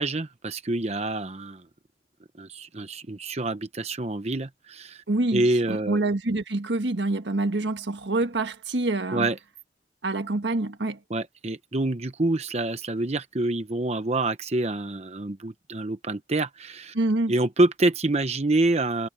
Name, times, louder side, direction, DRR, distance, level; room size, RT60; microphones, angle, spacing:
voice 1, 0.0-1.6 2.4-5.0 5.3-6.0 9.1-9.4 11.1-16.9 17.3-19.1, right 2 dB, 35° right, 0.9 m, -26 dB
voice 2, 5.1-9.3 10.0-11.0 16.9-17.3, right 2 dB, 85° right, 1.5 m, -26 dB
head